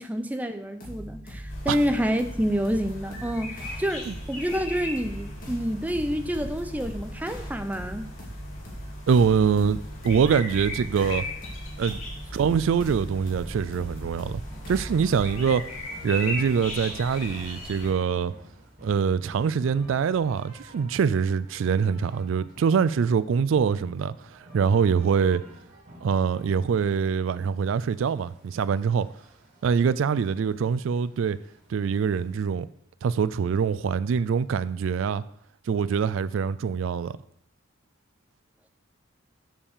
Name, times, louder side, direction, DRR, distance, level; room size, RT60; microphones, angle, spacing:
voice 1, 0.0-8.1, equal, 10° right, 0.6 m, -28 dB
sound 1, 0.8-15.6, equal, 45° left, 2.2 m, -40 dB
sound 2, 1.5-17.9, left 1 dB, 80° left, 2.8 m, -39 dB
voice 2, 9.1-9.8 10.0-11.3 11.8-12.0 12.3-14.4 14.7-15.6 16.0-18.3 18.8-25.4 26.0-29.1 29.6-31.4 31.7-32.7 33.0-35.2 35.7-37.1, right 6 dB, 75° right, 0.3 m, -24 dB
sound 3, 13.1-32.5, right 1 dB, 45° right, 3.6 m, -50 dB
7.2 x 5.5 x 6.7 m
head